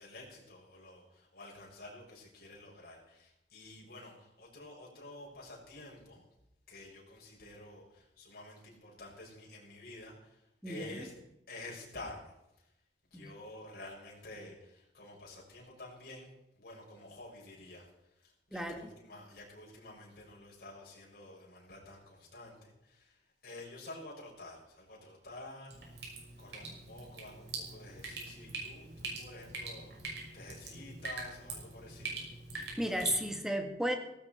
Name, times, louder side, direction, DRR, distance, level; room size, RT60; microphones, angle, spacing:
voice 1, 0.0-6.3 6.7-11.2 11.5-12.3 13.1-16.3 16.6-17.9 18.2-25.7 26.4-32.2, left 2 dB, 60° left, -2 dB, 6.9 m, -50 dB
voice 2, 10.6-11.0 13.1-13.3 18.5-18.8 32.6-33.9, equal, 5° right, 4 dB, 2.1 m, -34 dB
Drip, 25.7-33.2, right 3 dB, 75° right, 6.2 m, -44 dB
18.0 x 15.0 x 4.6 m, 0.89 s
head